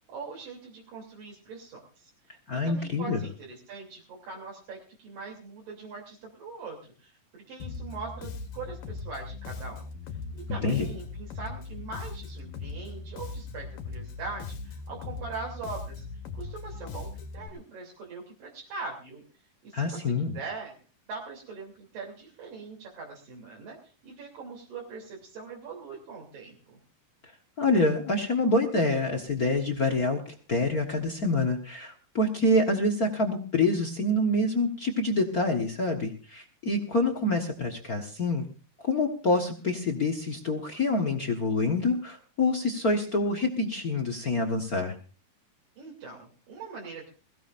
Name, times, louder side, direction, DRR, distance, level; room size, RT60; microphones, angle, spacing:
voice 1, 0.1-9.9 10.3-16.0 16.3-19.2 19.6-20.0 20.3-20.7 21.1-26.8 37.2-37.3 45.8-47.1, right 4 dB, 75° right, -3 dB, 4.9 m, -42 dB
voice 2, 2.5-3.2 10.5-10.9 19.7-20.4 27.6-38.5 38.8-44.9, left 2 dB, 55° left, 5 dB, 1.0 m, -26 dB
Bass guitar, 7.6-17.5, left 4 dB, 80° left, 3.0 m, -39 dB
21.5 x 16.5 x 2.6 m, 0.37 s
omnidirectional pair, 3.9 m